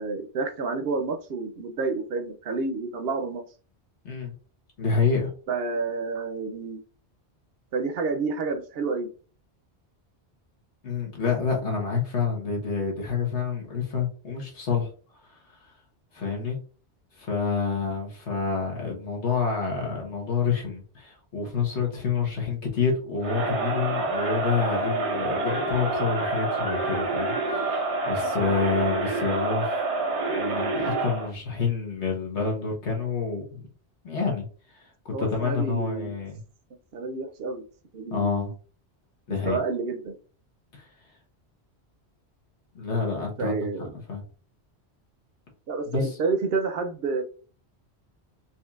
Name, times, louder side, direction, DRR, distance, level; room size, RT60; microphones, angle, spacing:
voice 1, 0.0-3.4 5.5-6.8 7.7-9.1 28.4-28.5 35.1-36.2 36.9-37.6 37.9-38.5 39.5-40.2 43.4-43.9 45.7-47.2, right 4 dB, 65° right, 7 dB, 0.8 m, -29 dB
voice 2, 4.8-5.3 10.8-14.9 15.3-15.4 16.1-16.6 17.2-29.8 30.3-33.7 34.0-34.4 34.7-36.4 38.1-38.5 39.3-39.6 40.7-40.9 42.7-43.7 44.1-44.2 45.9-46.2, left 5 dB, 85° left, 0 dB, 1.5 m, -28 dB
Crowd, 23.2-31.3, right 2 dB, 90° right, 1.2 m, -27 dB
4.3 x 2.8 x 2.3 m, 0.39 s
omnidirectional pair, 1.1 m